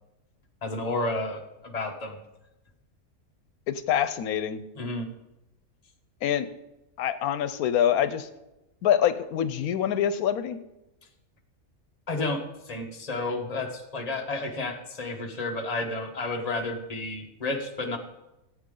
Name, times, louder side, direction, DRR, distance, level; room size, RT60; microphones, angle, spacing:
voice 1, 0.6-2.2 4.8-5.1 12.1-18.0, left 2 dB, 30° left, 3 dB, 1.2 m, -31 dB
voice 2, 3.7-4.6 6.2-6.5 7.0-8.3 8.8-10.6, left 9 dB, 90° left, 12 dB, 1.1 m, -25 dB
15.5 x 8.7 x 3.8 m, 0.96 s
omnidirectional pair, 1.5 m